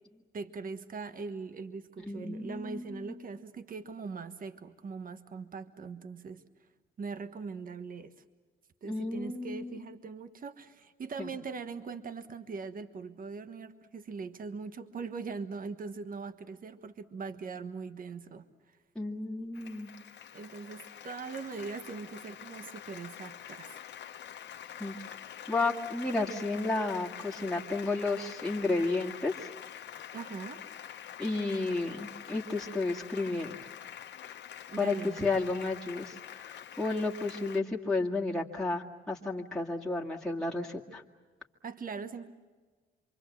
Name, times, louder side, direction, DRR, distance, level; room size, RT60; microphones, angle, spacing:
voice 1, 0.3-6.4 7.0-8.2 8.8-18.5 20.3-23.8 30.1-30.6 34.7-35.3 41.6-42.3, right 4 dB, 45° right, 10 dB, 1.4 m, -41 dB
voice 2, 2.0-3.1 8.8-9.8 11.2-11.3 19.0-19.9 24.8-24.9 25.5-29.5 31.2-33.6 34.8-41.0, left 3 dB, 5° left, -3 dB, 2.3 m, -32 dB
Applause, 19.5-37.6, left 9 dB, 65° left, 1.3 m, -46 dB
27.0 x 24.5 x 7.5 m, 1.4 s
cardioid pair, 90°, 20 cm